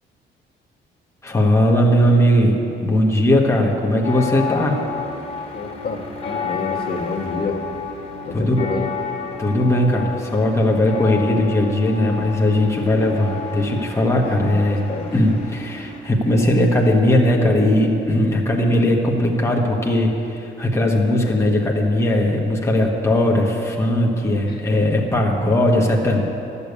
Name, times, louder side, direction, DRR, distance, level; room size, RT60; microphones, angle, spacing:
voice 1, 1.2-4.8 8.3-8.6 9.4-26.2, left 1 dB, 15° left, -1 dB, 1.4 m, -18 dB
sound 1, 4.0-16.0, left 5 dB, 35° left, 2.1 m, -31 dB
voice 2, 5.5-7.6 8.2-8.9 14.4-15.1 24.5-24.8, left 3 dB, 50° left, 0 dB, 1.6 m, -28 dB
11.5 x 7.0 x 8.2 m, 2.9 s
cardioid pair, 90°, 20 cm